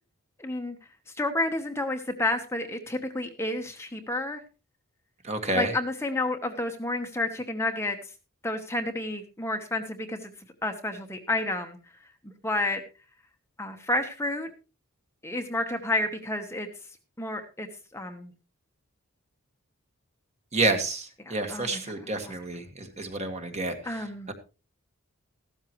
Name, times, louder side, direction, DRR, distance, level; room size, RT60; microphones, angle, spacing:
voice 1, 0.4-0.8 1.1-4.4 5.6-8.1 8.4-10.3 10.6-11.8 12.2-12.8 13.6-14.5 15.2-16.7 17.2-17.7 17.9-18.3 21.3-21.8 22.2-22.3 23.9-24.3, left 2 dB, 10° left, 5 dB, 1.0 m, -30 dB
voice 2, 5.2-5.7 20.5-24.3, right 2 dB, 30° right, 6 dB, 1.7 m, -29 dB
15.0 x 12.5 x 3.1 m, 0.32 s
head